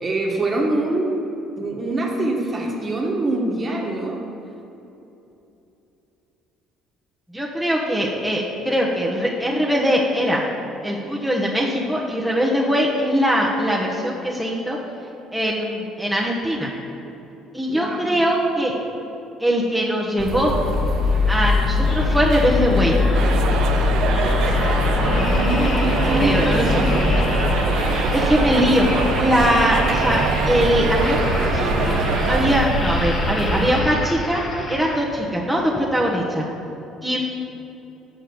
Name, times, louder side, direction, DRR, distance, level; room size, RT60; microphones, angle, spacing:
voice 1, 0.0-1.1 1.6-4.2 17.7-18.0 24.5-27.1, right 2 dB, 30° right, -1 dB, 1.5 m, -25 dB
voice 2, 7.3-10.4 10.8-14.8 15.3-16.7 17.5-18.7 19.4-20.5 21.3-23.0 26.1-26.8 28.1-28.9 29.2-34.4 34.7-36.4 37.0-37.2, equal, ahead, -3 dB, 1.1 m, -21 dB
sound 1, 20.2-33.8, left 2 dB, 55° right, 1.0 m, -22 dB
sound 2, 21.8-35.4 35.9-36.1, left 2 dB, 40° left, 1.3 m, -30 dB
sound 3, 23.1-32.6, right 6 dB, 70° right, 0.6 m, -26 dB
6.2 x 5.9 x 7.0 m, 2.9 s
supercardioid pair, 95°, 0 cm